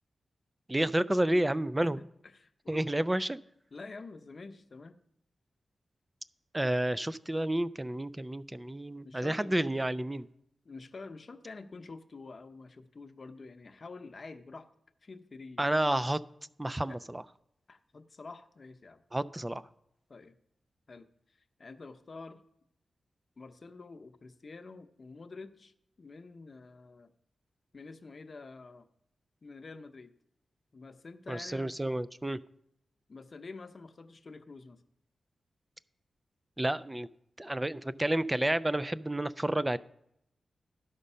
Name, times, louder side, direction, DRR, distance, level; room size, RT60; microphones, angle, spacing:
voice 1, 0.7-2.0 2.7-3.4 6.5-10.3 15.6-16.2 16.6-17.2 19.1-19.6 31.3-32.4 36.6-37.1 37.4-39.8, right 1 dB, 15° right, 16 dB, 0.3 m, -30 dB
voice 2, 1.8-3.1 3.7-5.0 9.0-9.6 10.6-14.7 15.0-15.7 16.9-17.0 17.7-19.0 20.1-20.3 20.9-22.4 23.4-27.1 27.7-28.9 29.4-30.1 30.7-31.8 33.1-34.8 37.6-38.0, left 3 dB, 50° left, 9 dB, 0.7 m, -48 dB
12.5 x 5.2 x 5.5 m, 0.76 s
cardioid pair, 80°, 0 cm